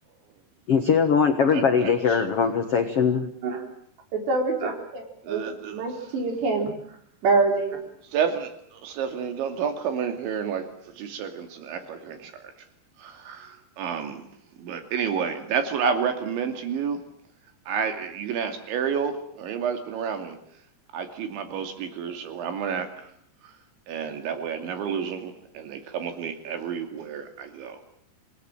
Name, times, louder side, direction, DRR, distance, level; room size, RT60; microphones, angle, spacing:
voice 1, 0.7-3.3, left 6 dB, 75° left, 7 dB, 1.3 m, -21 dB
voice 2, 1.5-1.9 5.2-5.8 8.1-10.6 11.0-12.3 13.0-14.3 14.6-17.0 17.7-20.4 20.9-22.9 23.9-27.8, right 7 dB, 85° right, 7 dB, 4.9 m, -30 dB
voice 3, 4.1-5.4 5.7-6.7 7.2-7.8, right 3 dB, 70° right, 4 dB, 6.5 m, -25 dB
27.0 x 19.0 x 9.0 m, 0.69 s
omnidirectional pair, 5.2 m